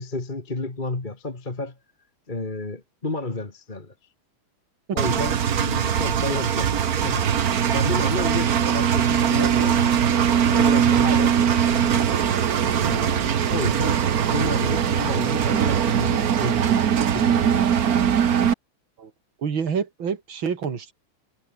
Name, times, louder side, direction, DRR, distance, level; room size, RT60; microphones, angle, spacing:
voice 1, 0.0-1.7 2.3-3.9 4.9-9.9 10.5-12.1 12.8-14.0 14.3-17.7, left 2 dB, 25° left, 2.4 m, -31 dB
Engine, 5.0-18.5, right 8 dB, 50° right, 1.5 m, -21 dB
voice 2, 9.4-9.7 19.0-19.1 19.4-20.9, right 6 dB, 75° right, 3.1 m, -28 dB
omnidirectional pair, 2.2 m